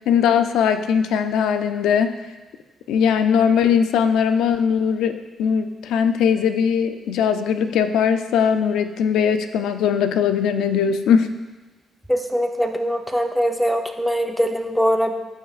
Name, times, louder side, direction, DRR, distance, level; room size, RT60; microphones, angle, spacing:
voice 1, 0.1-2.2 2.9-11.3, left 7 dB, 85° left, 9 dB, 0.5 m, -20 dB
voice 2, 12.1-15.1, equal, ahead, 4 dB, 0.7 m, -22 dB
13.5 x 5.2 x 2.4 m, 1.2 s
cardioid pair, 90°, 0 cm